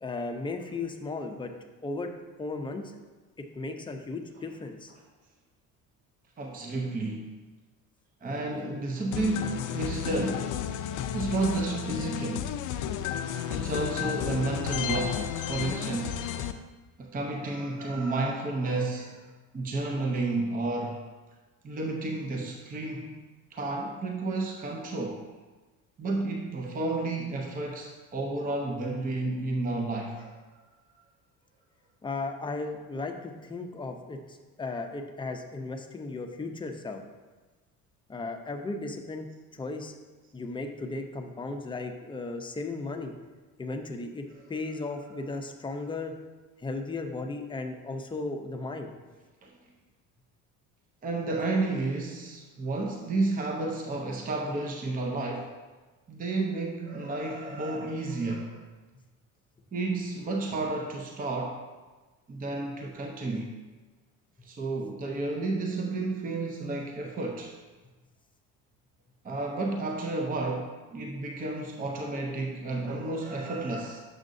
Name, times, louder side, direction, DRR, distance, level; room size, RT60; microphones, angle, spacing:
voice 1, 0.0-1.5 1.8-2.1 2.4-2.9 3.4-4.9 32.0-37.0 38.1-39.9 40.3-43.1 43.6-46.2 46.6-48.9, left 3 dB, 15° left, 4 dB, 0.6 m, -36 dB
voice 2, 6.4-7.3 8.2-10.5 11.1-12.5 13.5-16.2 17.0-19.3 19.5-21.0 21.6-23.2 23.5-25.2 26.0-30.4 49.4-49.6 51.0-55.5 56.1-58.6 59.7-61.6 62.3-63.5 64.4-67.5 69.2-74.0, right 2 dB, 25° right, 2 dB, 0.6 m, -31 dB
sound 1, 9.1-16.5, left 9 dB, 60° left, 0.5 m, -32 dB
7.3 x 6.4 x 2.6 m, 1.3 s
cardioid pair, 110°, 35 cm